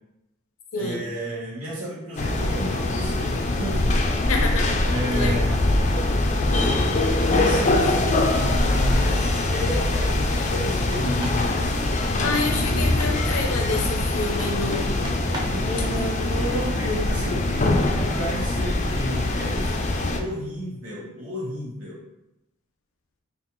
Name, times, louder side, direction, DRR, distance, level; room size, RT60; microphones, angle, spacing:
voice 1, 0.7-4.0 4.8-5.7 6.6-11.8 15.4-22.0, equal, 90° right, -7 dB, 1.3 m, -32 dB
sound 1, 2.2-20.2, left 2 dB, 35° left, 0.3 m, -23 dB
voice 2, 4.3-4.8 5.1-5.4 12.2-15.3, left 3 dB, 80° left, 2 dB, 0.6 m, -28 dB
sound 2, 10.8-11.5 12.2-13.5 14.2-15.7, right 1 dB, 20° right, 0.6 m, -37 dB
5.2 x 2.4 x 3.0 m, 0.87 s
head